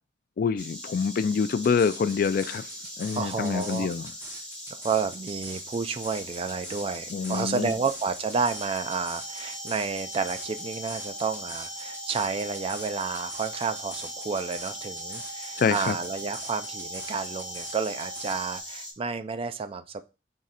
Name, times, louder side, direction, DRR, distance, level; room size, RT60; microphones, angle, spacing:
voice 1, 0.4-2.7 3.0-4.1 7.1-7.7 15.6-16.0, left 6 dB, 55° left, 0.3 m, -26 dB
Insect, 0.6-18.9, left 1 dB, 5° left, 1.5 m, -41 dB
sound 1, 1.6-18.4, right 1 dB, 15° right, 1.5 m, -44 dB
voice 2, 3.2-3.9 4.8-20.0, right 5 dB, 30° right, 0.3 m, -30 dB
sound 2, 8.3-18.6, right 2 dB, 90° left, 0.9 m, -42 dB
3.7 x 3.1 x 4.2 m
head